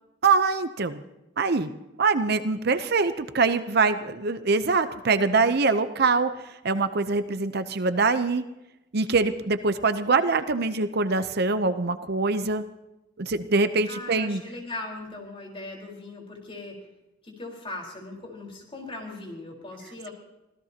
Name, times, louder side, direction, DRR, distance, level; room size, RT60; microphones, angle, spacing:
voice 1, 0.2-1.0 1.4-1.7 2.0-6.3 6.6-8.4 8.9-12.6 13.2-14.4, right 4 dB, 55° right, 11 dB, 0.7 m, -23 dB
voice 2, 13.9-16.8 17.2-20.1, left 2 dB, 30° left, 0 dB, 4.5 m, -39 dB
25.5 x 16.5 x 2.9 m, 0.97 s
head